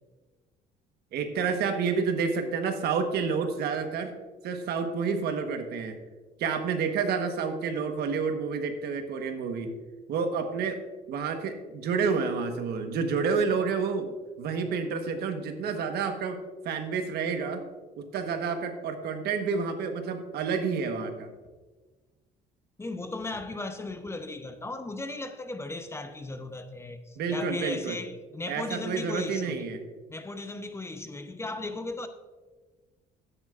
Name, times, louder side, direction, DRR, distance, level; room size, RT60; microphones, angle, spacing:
voice 1, 1.1-4.1 4.4-6.0 6.4-9.7 10.1-10.8 11.1-16.4 16.6-17.6 18.0-21.3 27.2-28.0 28.5-29.8, right 5 dB, 70° right, 1.3 m, -29 dB
voice 2, 22.8-29.7 30.1-32.1, left 2 dB, 15° left, 0.7 m, -36 dB
13.0 x 9.9 x 2.5 m
cardioid pair, 110°, 17 cm